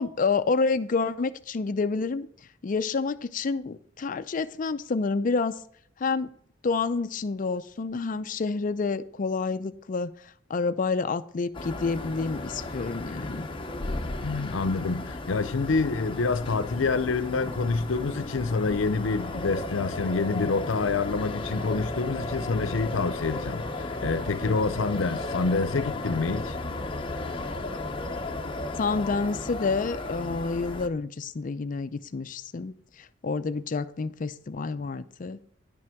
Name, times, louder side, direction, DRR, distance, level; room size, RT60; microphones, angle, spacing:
voice 1, 0.0-2.3 2.6-5.6 6.0-6.3 6.6-13.5 28.8-35.4, left 4 dB, 45° left, 0.4 m, -29 dB
sound 1, 11.5-30.9, left 2 dB, 25° left, 0.8 m, -34 dB
voice 2, 14.2-26.6, left 4 dB, 85° left, 0.6 m, -27 dB
10.5 x 6.1 x 4.5 m
head